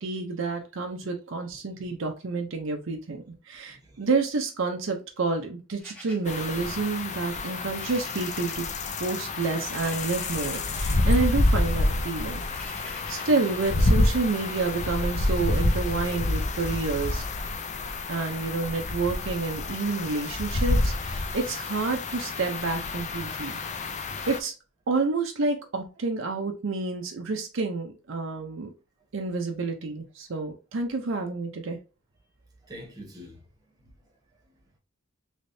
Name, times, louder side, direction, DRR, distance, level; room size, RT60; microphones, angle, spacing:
voice 1, 0.0-8.7 9.0-12.4 13.1-17.2 18.1-23.6 24.3-24.5 24.9-28.7 29.1-31.8, right 3 dB, 70° right, 0.6 m, -29 dB
voice 2, 3.7-4.1 23.9-24.3 32.6-33.4 33.8-33.9, equal, 20° right, 1.1 m, -46 dB
sound 1, 5.8-8.7 9.0-10.8 11.2-13.4, left 1 dB, 5° left, 0.9 m, -48 dB
sound 2, 6.3-24.4, left 2 dB, 35° left, 0.4 m, -28 dB
sound 3, 8.6-18.3, left 2 dB, 85° left, 2.0 m, -51 dB
3.3 x 3.1 x 2.6 m
head